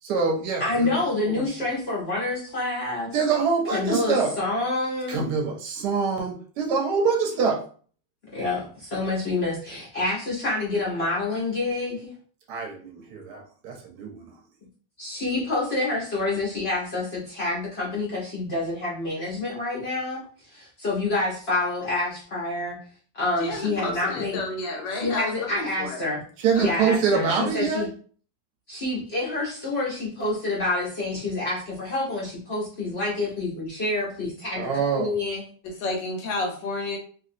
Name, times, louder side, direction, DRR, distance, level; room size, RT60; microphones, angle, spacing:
voice 1, 0.0-0.9 1.3-1.4 3.1-4.3 5.1-7.6 12.5-14.3 26.4-27.9 34.6-35.1, right 5 dB, 70° right, 2 dB, 1.1 m, -25 dB
voice 2, 0.6-3.1 3.7-5.2 8.3-12.1 15.0-22.8 23.1-24.4 25.0-26.2 26.6-27.9 28.7-35.4, left 2 dB, 50° left, -5 dB, 0.7 m, -28 dB
voice 3, 23.4-26.0 26.5-26.9 27.2-27.4 35.6-37.0, left 2 dB, 80° left, 2 dB, 1.4 m, -31 dB
3.0 x 2.6 x 2.5 m, 0.44 s
omnidirectional pair, 2.0 m